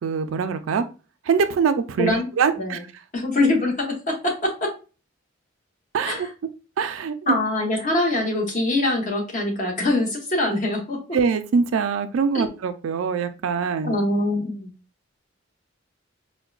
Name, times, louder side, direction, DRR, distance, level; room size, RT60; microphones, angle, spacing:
voice 1, 0.0-0.9 1.2-2.8 5.9-6.3 6.8-7.4 11.1-14.0, right 6 dB, 80° right, 10 dB, 0.4 m, -23 dB
voice 2, 3.1-4.7 6.1-6.2 7.3-11.0 12.3-12.4 13.8-14.7, left 2 dB, 40° left, -1 dB, 1.0 m, -23 dB
4.5 x 2.1 x 2.3 m, 0.34 s
head